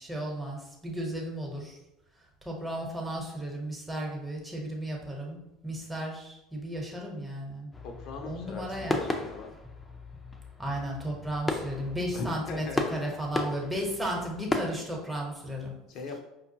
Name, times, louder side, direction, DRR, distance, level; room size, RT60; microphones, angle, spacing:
voice 1, 0.0-1.8 2.4-7.7 8.3-9.1 10.6-15.7, right 1 dB, 10° right, -1 dB, 1.1 m, -34 dB
sound 1, 7.7-14.7, left 2 dB, 15° left, 0.5 m, -35 dB
voice 2, 7.8-9.5 12.1-12.8 15.9-16.2, left 4 dB, 60° left, 2 dB, 0.6 m, -39 dB
4.9 x 2.2 x 2.8 m, 0.93 s
hypercardioid pair, 80°, 0 cm